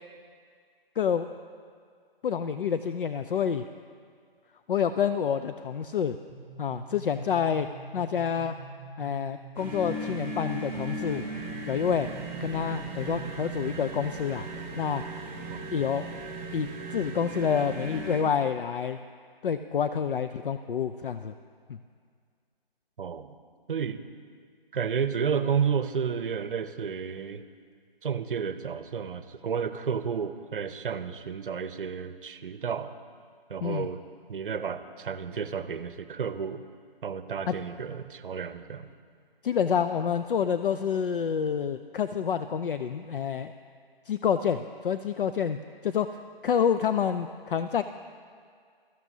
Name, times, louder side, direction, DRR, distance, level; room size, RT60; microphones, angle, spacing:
voice 1, 1.0-1.4 2.2-3.6 4.7-6.2 6.6-7.7 7.9-8.6 9.0-11.2 11.7-12.1 12.4-14.5 14.8-15.0 15.7-16.1 16.5-19.0 19.4-21.3 33.6-33.9 37.5-37.6 39.4-43.5 44.1-45.6 45.8-46.1 46.4-47.8, left 7 dB, 60° left, 10 dB, 0.4 m, -28 dB
sound 1, 6.3-13.9, right 4 dB, 10° left, 1.6 m, -45 dB
sound 2, 9.5-18.2, right 2 dB, 10° right, 2.3 m, -37 dB
voice 2, 15.5-15.9 23.0-23.4 23.7-24.0 24.7-27.4 28.0-32.9 33.5-34.0 34.3-36.6 37.0-38.9, right 7 dB, 60° right, 12 dB, 0.7 m, -31 dB
16.0 x 13.5 x 2.7 m, 2.1 s
figure-of-eight pair, 155°, 30 cm